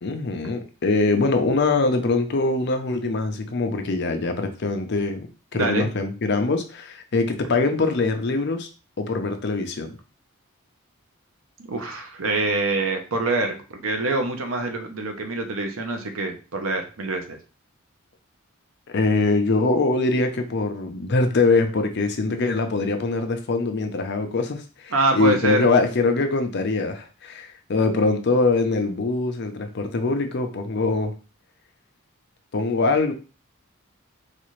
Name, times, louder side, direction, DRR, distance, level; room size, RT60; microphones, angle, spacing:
voice 1, 0.0-5.3 5.5-8.7 9.0-10.0 18.9-31.1 32.5-33.1, left 3 dB, 55° left, 6 dB, 0.6 m, -23 dB
voice 2, 5.5-5.9 11.6-17.4 24.9-25.7, right 2 dB, 75° right, 5 dB, 0.7 m, -25 dB
4.0 x 2.4 x 3.1 m, 0.35 s
head